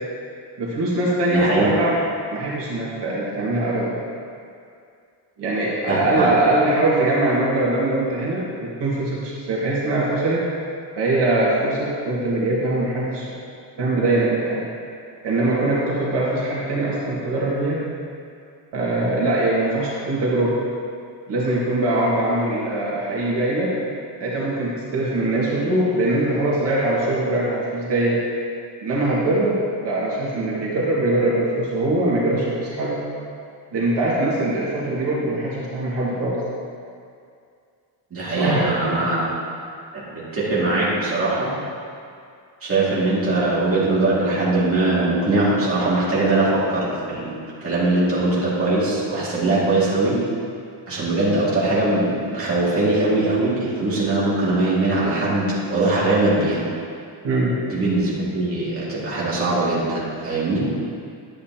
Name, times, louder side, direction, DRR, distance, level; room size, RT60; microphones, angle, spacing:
voice 1, 0.6-2.0 2.3-4.0 5.4-10.4 11.0-13.3 13.8-14.6 15.2-17.8 18.7-20.6 21.3-23.7 24.2-28.2 28.8-33.0 33.7-36.4 38.3-39.1 57.2-57.6, right 2 dB, 75° right, -6 dB, 2.0 m, -22 dB
voice 2, 1.3-1.8 5.9-6.3 38.1-39.2 39.9-41.5 42.6-50.2 50.9-56.6 57.7-60.7, right 2 dB, 30° right, -8 dB, 2.4 m, -21 dB
11.0 x 8.6 x 2.9 m, 2.3 s
cardioid pair, 155°, 42 cm